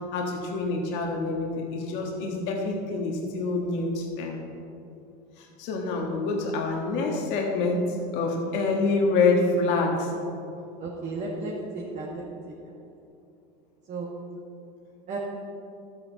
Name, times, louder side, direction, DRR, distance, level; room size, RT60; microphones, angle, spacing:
voice 1, 0.1-4.4 5.4-10.4, left 3 dB, 65° left, 0 dB, 1.6 m, -26 dB
voice 2, 10.8-12.5 13.9-14.1 15.1-15.2, right 3 dB, 40° right, -3 dB, 1.6 m, -34 dB
12.5 x 8.6 x 4.1 m, 2.6 s
supercardioid pair, 125°, 20 cm